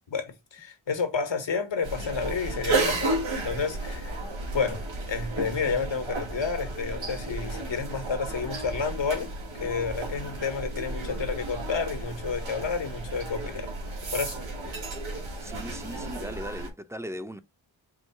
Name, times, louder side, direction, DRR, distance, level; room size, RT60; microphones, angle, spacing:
voice 1, 0.1-3.1 3.4-4.2 4.5-13.7 14.1-14.4, left 5 dB, 70° left, 1.5 m, -30 dB
sound 1, 1.8-16.7, right 2 dB, 90° right, 1.6 m, -33 dB
voice 2, 15.4-17.4, equal, 5° right, 0.6 m, -38 dB
4.7 x 2.2 x 4.4 m
cardioid pair, 45°, 45 cm